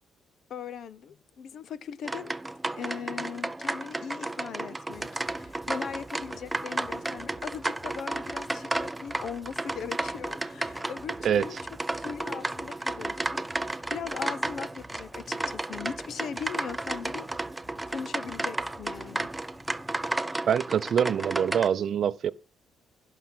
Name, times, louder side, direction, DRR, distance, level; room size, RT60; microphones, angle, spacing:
voice 1, 0.5-2.4 2.8-11.6 11.9-17.3 17.9-19.3, left 7 dB, 60° left, 0.8 m, -39 dB
sound 1, 2.0-21.7, right 2 dB, 10° right, 0.5 m, -33 dB
sound 2, 4.9-20.1, equal, 5° left, 1.4 m, -51 dB
voice 2, 20.5-22.3, right 8 dB, 55° right, 0.6 m, -25 dB
16.0 x 5.8 x 5.9 m
cardioid pair, 115°, 0 cm